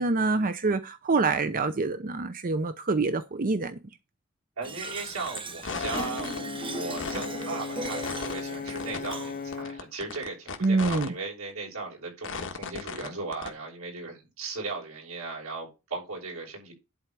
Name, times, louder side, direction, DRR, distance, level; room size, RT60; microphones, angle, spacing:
voice 1, 0.0-3.8 10.6-11.1, right 3 dB, 40° right, 0.6 m, -26 dB
Fill (with liquid), 4.6-9.6, right 3 dB, 25° right, 1.1 m, -39 dB
voice 2, 4.6-16.7, right 3 dB, 90° right, 6.4 m, -37 dB
sound 1, 5.2-5.4 5.6-6.4 6.8-7.4 7.8-8.4 8.7-9.1 9.5-11.1 11.5-11.6 12.2-13.1 13.3-13.5, left 4 dB, 60° left, 1.5 m, -35 dB
Brass instrument, 5.7-9.9, left 5 dB, 40° left, 0.5 m, -37 dB
11.0 x 4.4 x 6.1 m
head